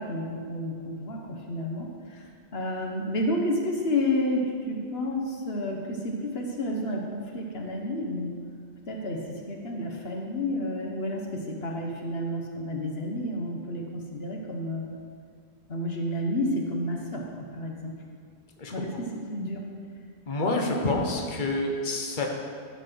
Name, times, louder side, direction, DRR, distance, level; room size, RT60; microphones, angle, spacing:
voice 1, 0.0-2.3 2.5-8.4 8.9-14.9 15.7-17.9 18.7-19.6, left 1 dB, 70° left, 0 dB, 1.4 m, -30 dB
voice 2, 20.3-22.3, left 2 dB, 50° left, 1 dB, 1.3 m, -27 dB
14.0 x 5.8 x 6.1 m, 2.1 s
omnidirectional pair, 1.1 m